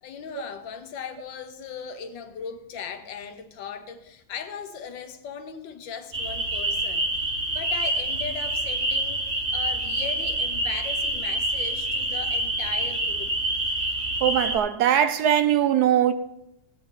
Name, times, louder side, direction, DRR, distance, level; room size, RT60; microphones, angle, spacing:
voice 1, 0.0-7.1 7.5-9.2 9.5-13.3, left 7 dB, 80° left, 1.7 m, -38 dB
sound 1, 6.1-14.6, right 1 dB, 30° right, 1.4 m, -27 dB
voice 2, 14.2-16.1, right 10 dB, 70° right, 1.0 m, -21 dB
16.5 x 8.5 x 3.8 m
omnidirectional pair, 2.0 m